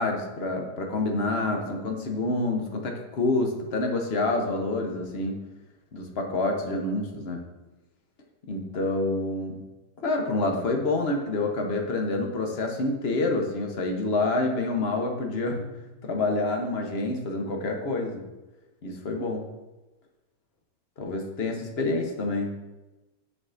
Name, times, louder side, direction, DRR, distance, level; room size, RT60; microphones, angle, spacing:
voice 1, 0.0-5.4 5.9-7.4 8.5-9.6 10.0-15.7 16.0-18.2 18.8-19.4 21.0-22.5, left 2 dB, 50° left, 2 dB, 0.9 m, -27 dB
8.5 x 4.8 x 2.5 m, 1.1 s
omnidirectional pair, 1.7 m